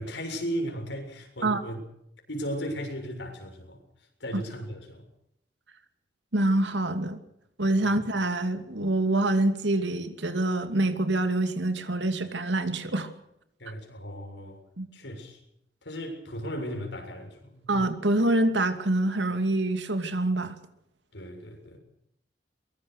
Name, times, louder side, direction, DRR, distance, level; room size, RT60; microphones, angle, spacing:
voice 1, 0.0-1.8 2.3-3.8 4.2-5.0 13.6-14.6 14.9-15.4 15.8-17.7 21.1-21.8, equal, 85° left, 4 dB, 7.1 m, -36 dB
voice 2, 6.3-7.2 7.6-13.1 14.8-14.9 17.7-20.6, right 2 dB, 90° right, 8 dB, 2.6 m, -26 dB
23.0 x 22.5 x 6.6 m, 0.77 s
head